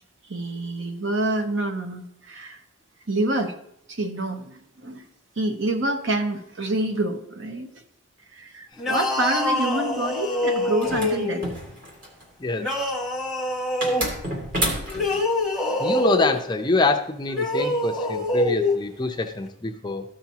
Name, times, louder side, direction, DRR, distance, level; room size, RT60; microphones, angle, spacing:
voice 1, 0.3-2.6 3.1-3.5 3.9-5.1 5.4-7.7 8.3-11.4, right 2 dB, 60° right, 4 dB, 1.0 m, -27 dB
sound 1, 8.8-11.5 12.6-14.1 14.9-16.4 17.3-18.8, left 1 dB, ahead, 1.0 m, -25 dB
sound 2, 10.8-12.2 13.8-15.2, equal, 40° right, 2.2 m, -29 dB
voice 2, 15.8-20.0, left 3 dB, 20° left, 5 dB, 0.5 m, -25 dB
14.0 x 5.9 x 2.8 m, 0.76 s
head